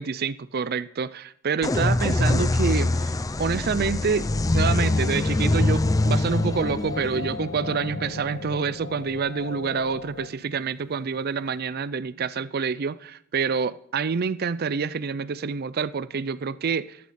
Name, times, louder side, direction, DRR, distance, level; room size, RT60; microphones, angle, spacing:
voice 1, 0.0-4.3 4.5-17.0, right 5 dB, 50° right, 0.5 m, -27 dB
sound 1, 1.6-9.2, left 2 dB, 15° left, 0.4 m, -24 dB
sound 2, 4.0-10.3, left 3 dB, 60° left, 0.7 m, -38 dB
14.5 x 11.5 x 4.2 m
head